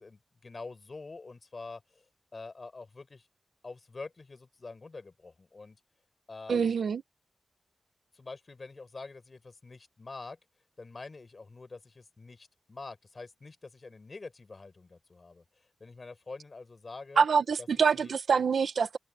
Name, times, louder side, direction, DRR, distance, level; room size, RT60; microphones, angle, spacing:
voice 1, 0.0-2.0 2.3-3.3 3.6-5.8 6.3-6.8 8.1-10.4 10.8-15.4 15.8-17.3 17.6-17.7 17.9-18.2, left 3 dB, 45° left, 7.0 m, -46 dB
voice 2, 6.5-7.0 17.2-19.0, right 6 dB, 75° right, 1.3 m, -25 dB
cardioid pair, 65°, 0 cm